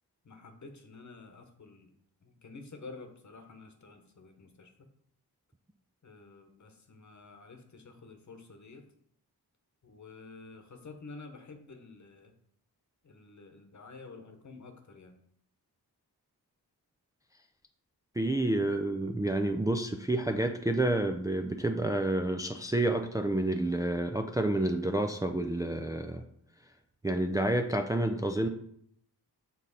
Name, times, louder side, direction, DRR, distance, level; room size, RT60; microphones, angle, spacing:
voice 1, 0.2-1.9 2.2-4.7 6.0-8.8 9.8-12.3 13.0-15.2, left 3 dB, 50° left, 5 dB, 1.1 m, -50 dB
voice 2, 18.2-26.2 27.0-28.5, right 1 dB, 10° right, 5 dB, 0.4 m, -29 dB
7.2 x 4.0 x 4.2 m, 0.68 s
cardioid pair, 75°, 38 cm